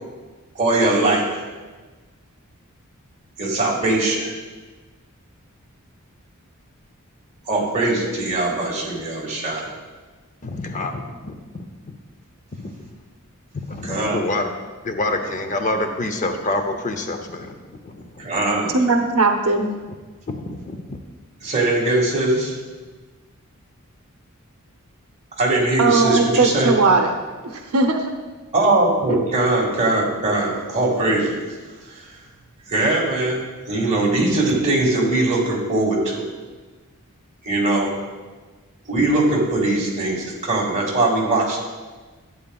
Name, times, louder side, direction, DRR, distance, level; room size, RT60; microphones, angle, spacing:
voice 1, 0.5-1.4 3.4-4.3 7.5-9.6 13.8-14.2 18.2-18.7 21.4-22.5 25.4-26.7 28.5-31.4 31.9-32.0 32.7-36.2 37.4-37.9 38.9-41.6, right 2 dB, 30° right, -3 dB, 1.8 m, -21 dB
voice 2, 10.4-11.9 12.5-12.7 13.5-14.5 14.8-18.3 20.3-21.0, left 2 dB, 35° left, 6 dB, 0.5 m, -27 dB
voice 3, 18.7-19.7 25.8-27.1 27.4-28.1 29.1-29.2, right 3 dB, 80° right, 4 dB, 0.7 m, -18 dB
11.5 x 8.9 x 2.3 m, 1.3 s
head